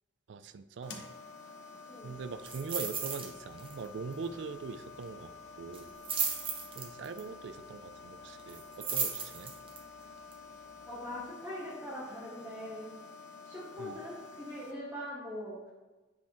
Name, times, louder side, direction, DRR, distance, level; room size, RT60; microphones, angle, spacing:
voice 1, 0.3-1.0 2.0-5.3 5.6-5.9 6.7-9.5 13.8-14.0, right 5 dB, 80° right, 12 dB, 0.4 m, -42 dB
sound 1, 0.8-14.7, left 4 dB, 85° left, 0.9 m, -50 dB
voice 2, 1.9-2.2 10.8-12.9 13.4-15.7, left 1 dB, 15° right, -7 dB, 1.2 m, -42 dB
sound 2, 2.4-3.3 3.6-3.9 4.1-4.2 5.7-7.2 8.5-9.8 10.3-10.4, right 5 dB, 30° right, 0.8 m, -35 dB
8.0 x 3.5 x 4.5 m, 1.2 s
head